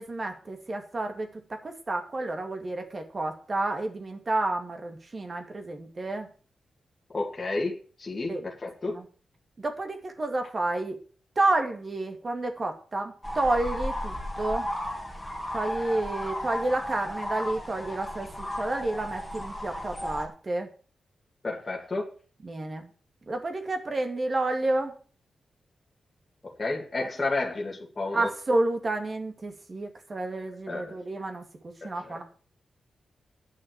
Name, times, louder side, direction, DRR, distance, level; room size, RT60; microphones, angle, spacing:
voice 1, 0.0-6.3 8.3-8.5 8.9-9.0 9.6-11.0 11.4-14.7 15.5-20.7 22.4-22.9 23.3-25.0 28.1-31.4 31.8-32.2, right 2 dB, 35° right, 5 dB, 2.2 m, -30 dB
voice 2, 7.1-9.0 21.4-22.1 26.4-28.3 30.7-31.0 31.8-32.2, left 3 dB, 30° left, -1 dB, 2.3 m, -31 dB
sound 1, 13.2-20.3, left 1 dB, 5° left, 3.2 m, -34 dB
9.7 x 6.4 x 8.9 m, 0.41 s
wide cardioid pair, 120°, 0 cm